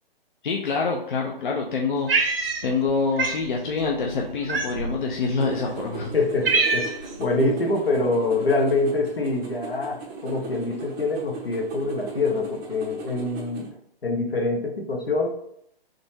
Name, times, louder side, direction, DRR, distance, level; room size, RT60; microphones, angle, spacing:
voice 1, 0.4-2.3 2.6-6.1, left 4 dB, 55° left, 0 dB, 0.7 m, -26 dB
Cat, 2.1-2.9 3.2-3.4 4.5-5.0 5.7-5.8 6.1-7.1, right 4 dB, 70° right, 0.8 m, -24 dB
sound 1, 5.4-13.7, right 4 dB, 20° right, 0.6 m, -38 dB
voice 2, 6.1-13.7 14.0-15.3, left 2 dB, 70° left, 2 dB, 1.1 m, -25 dB
4.0 x 2.9 x 3.3 m, 0.70 s
figure-of-eight pair, 125°, 30 cm